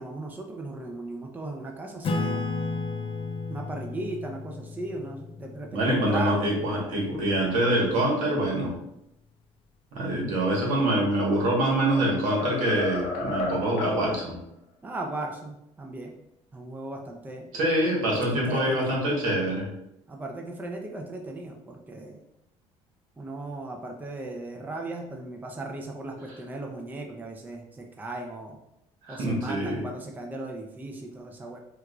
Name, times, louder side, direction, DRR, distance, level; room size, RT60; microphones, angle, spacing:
voice 1, 0.0-2.5 3.4-6.5 14.8-16.1 16.5-17.5 18.3-19.0 20.1-22.2 23.2-28.6 29.1-31.6, right 2 dB, 15° right, 1 dB, 0.5 m, -37 dB
Acoustic guitar / Strum, 2.0-7.0, left 3 dB, 40° left, 0.5 m, -33 dB
voice 2, 5.7-8.7 9.9-14.4 17.5-19.7 29.0-29.8, right 1 dB, 75° right, -2 dB, 1.2 m, -25 dB
sound 1, 11.1-11.5 11.9-14.0, left 2 dB, 85° left, 0.7 m, -32 dB
4.6 x 2.4 x 2.3 m, 0.82 s
supercardioid pair, 95°, 13 cm